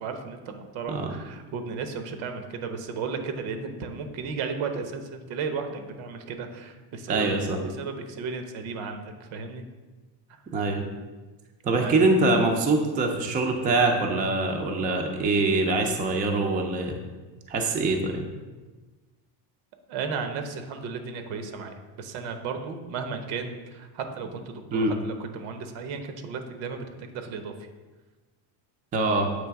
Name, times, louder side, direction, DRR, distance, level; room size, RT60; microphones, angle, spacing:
voice 1, 0.0-9.6 11.7-12.0 19.9-27.5, right 5 dB, 85° right, 6 dB, 0.9 m, -34 dB
voice 2, 7.1-7.6 10.5-10.8 11.6-17.0 17.5-18.3 24.7-24.9 28.9-29.3, right 2 dB, 20° right, 3 dB, 0.4 m, -24 dB
7.7 x 3.2 x 4.6 m, 1.3 s
cardioid pair, 165°, 45 cm